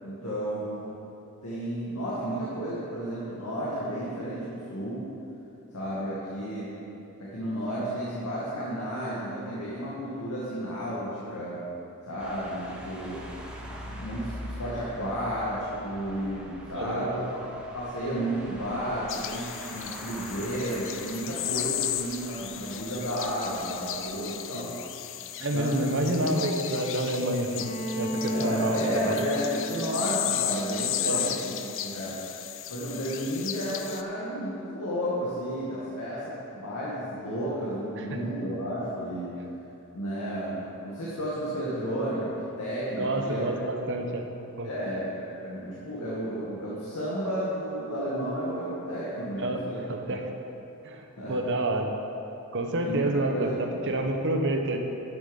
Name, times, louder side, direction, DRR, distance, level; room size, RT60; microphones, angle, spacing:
voice 1, 0.0-1.0 1.4-5.0 5.7-6.7 7.2-11.6 12.0-13.2 13.6-17.4 17.7-24.7 25.5-26.2 28.3-31.5 31.8-32.2 32.7-39.3 39.9-43.4 44.6-49.8 50.1-50.2 51.2-51.4 52.8-53.5 53.8-53.9, equal, 90° left, -8 dB, 2.1 m, -32 dB
sound 1, 12.2-24.1, equal, 5° right, 1.1 m, -44 dB
voice 2, 16.8-17.2 24.5-24.7 25.4-27.7 28.0-28.8 29.1-29.2 31.0-31.4 38.0-38.1 43.0-44.2 44.6-44.7 49.4-49.6 49.9-50.2 50.8-51.0 51.3-51.9 52.5-54.8, right 1 dB, 55° right, 3 dB, 1.0 m, -28 dB
sound 2, 19.1-34.0, left 11 dB, 60° left, 0.5 m, -35 dB
Bowed string instrument, 27.5-31.4, equal, 30° left, 1.1 m, -34 dB
11.5 x 7.4 x 5.5 m, 2.9 s
head